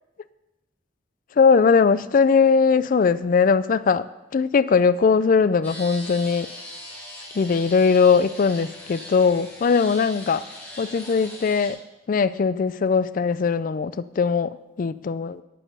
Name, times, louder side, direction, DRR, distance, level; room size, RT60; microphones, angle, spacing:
voice 1, 1.4-4.1 4.3-6.5 7.4-10.4 10.8-11.8 12.1-15.4, left 5 dB, 50° left, 16 dB, 0.4 m, -20 dB
sound 1, 5.6-11.7, equal, 10° left, 3.3 m, -40 dB
10.0 x 8.9 x 5.5 m, 0.99 s
head